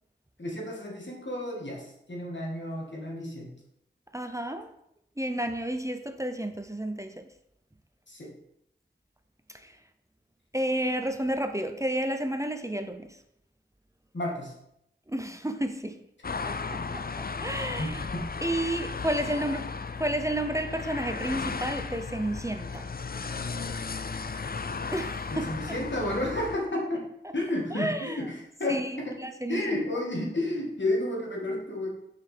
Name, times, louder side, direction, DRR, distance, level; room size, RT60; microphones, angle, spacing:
voice 1, 0.4-3.6 8.1-8.3 14.1-14.5 17.8-18.2 25.3-27.0 27.3-29.2 29.5-31.9, left 1 dB, 75° left, -1 dB, 1.8 m, -31 dB
voice 2, 4.1-4.7 5.2-7.3 9.5-9.8 10.5-13.2 15.1-16.0 16.4-16.8 17.2-18.0 18.4-22.9 24.9-25.5 27.7-28.2 28.7-29.8, right 1 dB, 15° right, 7 dB, 0.6 m, -31 dB
sound 1, 16.2-26.6, left 4 dB, 50° left, 0.4 m, -35 dB
6.4 x 5.0 x 4.9 m, 0.77 s
wide cardioid pair, 45°, 19 cm